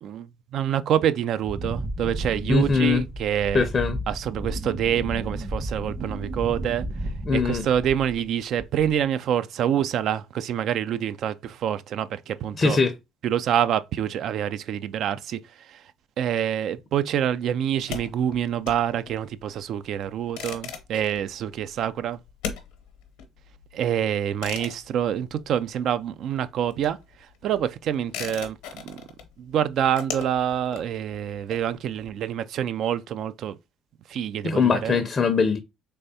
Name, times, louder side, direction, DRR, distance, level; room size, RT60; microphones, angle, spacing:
voice 1, 0.0-3.7 4.1-12.8 13.2-15.8 16.2-22.2 23.7-27.0 27.4-29.0 29.4-33.6 34.1-35.0, right 9 dB, 65° right, 0.3 m, -26 dB
Wind, 1.4-8.3 8.6-9.0, right 1 dB, 45° right, 1.1 m, -33 dB
voice 2, 2.5-3.0 3.5-4.0 7.3-7.7 12.6-12.9 34.4-35.6, left 5 dB, 40° left, 0.5 m, -21 dB
sound 1, 17.7-26.0 26.3-32.1, left 7 dB, 80° left, 0.8 m, -39 dB
3.4 x 3.3 x 2.7 m
hypercardioid pair, 60°, 0 cm